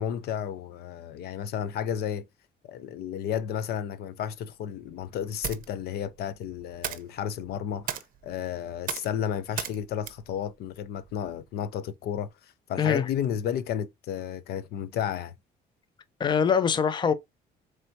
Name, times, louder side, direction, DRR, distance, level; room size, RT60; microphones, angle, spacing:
voice 1, 0.0-2.3 2.6-15.3, left 9 dB, 70° left, 0.5 m, -32 dB
sound 1, 4.5-11.5, right 11 dB, 55° right, 0.6 m, -40 dB
voice 2, 12.8-13.1 16.2-17.1, left 7 dB, 25° left, 0.5 m, -23 dB
4.4 x 3.2 x 2.6 m
cardioid pair, 110°, 17 cm